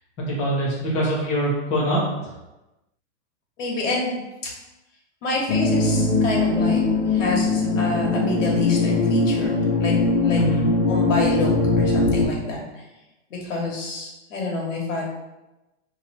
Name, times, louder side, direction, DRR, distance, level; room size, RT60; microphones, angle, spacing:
voice 1, 0.2-2.3 10.3-10.7, right 1 dB, 15° left, -7 dB, 0.6 m, -24 dB
voice 2, 3.6-4.2 5.2-6.8 7.1-9.9 10.2-10.4 10.9-11.5 11.8-12.6 13.3-15.0, left 3 dB, 85° left, -2 dB, 1.3 m, -27 dB
sound 1, 5.5-12.3, left 3 dB, 60° left, 0.8 m, -21 dB
2.8 x 2.3 x 4.2 m, 1.0 s
supercardioid pair, 165°, 37 cm